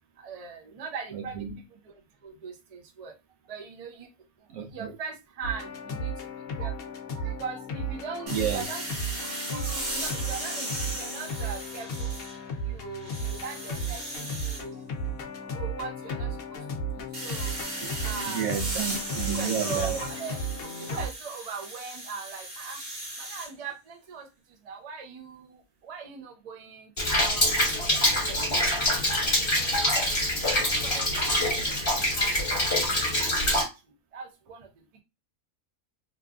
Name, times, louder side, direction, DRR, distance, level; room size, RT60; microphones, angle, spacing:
voice 1, 0.2-1.3 2.2-2.5 3.0-3.1 3.5-4.1 4.7-6.1 6.6-6.7 7.1-8.8 9.2-12.1 12.7-14.8 15.5-16.3 17.2-17.5 18.0-18.5 19.1-20.4 20.9-22.8 23.2-24.2 24.7-25.4 25.8-26.9 27.1-28.4 29.6-29.9 30.4-32.3 34.1-34.7, right 5 dB, 55° right, 0.4 m, -39 dB
voice 2, 1.1-1.6 4.5-5.0 8.3-8.6 17.8-17.9 18.3-20.1, right 7 dB, 75° right, 1.1 m, -31 dB
sound 1, 5.4-21.1, right 1 dB, 65° left, 0.6 m, -35 dB
sound 2, 8.3-12.5 12.9-14.6 17.1-23.5, right 1 dB, 35° right, 1.0 m, -36 dB
Rain, 27.0-33.6, left 1 dB, 30° left, 1.4 m, -25 dB
3.1 x 2.4 x 2.3 m
omnidirectional pair, 1.5 m